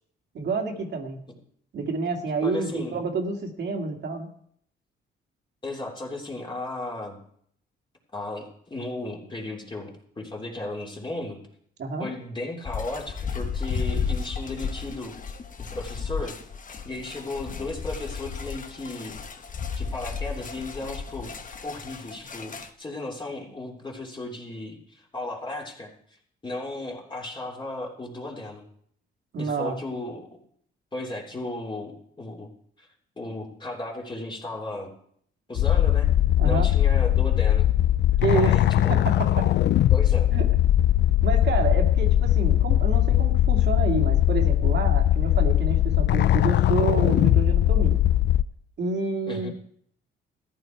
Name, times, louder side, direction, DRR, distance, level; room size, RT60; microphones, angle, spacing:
voice 1, 0.3-1.3 1.7-4.3 11.8-12.1 29.3-29.8 36.4-36.7 38.2-39.5 40.3-40.4 41.2-48.0 48.8-49.5, right 4 dB, 60° right, 2 dB, 2.3 m, -29 dB
voice 2, 2.4-3.0 5.6-7.2 8.1-11.4 12.0-15.1 15.7-16.4 16.8-19.2 19.7-25.9 26.4-28.6 29.4-30.4 30.9-32.5 32.8-32.9 33.2-34.9 35.5-36.1 36.4-37.7 38.3-39.1 39.9-40.4 49.3-49.5, left 2 dB, 25° left, -2 dB, 3.3 m, -35 dB
sound 1, 12.6-22.7, left 6 dB, 40° left, 1.2 m, -33 dB
sound 2, 35.6-48.4, left 12 dB, 60° left, 0.4 m, -20 dB
14.0 x 10.5 x 4.6 m, 0.66 s
cardioid pair, 90°, 20 cm